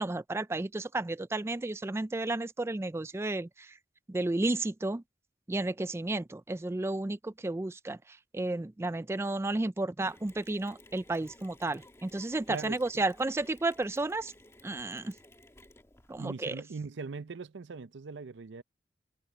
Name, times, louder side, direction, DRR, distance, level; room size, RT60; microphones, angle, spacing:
voice 1, 0.0-3.8 4.1-5.0 5.5-14.3 14.6-15.1 16.1-16.6, right 2 dB, 15° right, 0.3 m, -32 dB
Mechanisms, 10.0-16.2, left 1 dB, 15° left, 1.9 m, -57 dB
voice 2, 12.5-13.0 16.2-18.6, right 4 dB, 85° right, 0.6 m, -41 dB
head